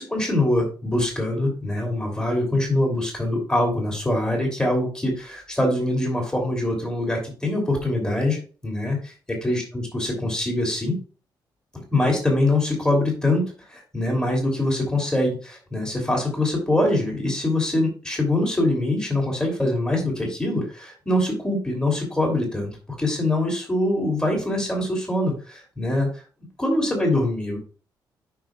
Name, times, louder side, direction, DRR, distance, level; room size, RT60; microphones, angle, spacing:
voice 1, 0.0-9.1 9.4-11.0 11.9-26.2 26.6-27.6, left 1 dB, 10° left, 1 dB, 3.2 m, -24 dB
9.2 x 5.9 x 2.5 m, 0.36 s
cardioid pair, 110°, 8 cm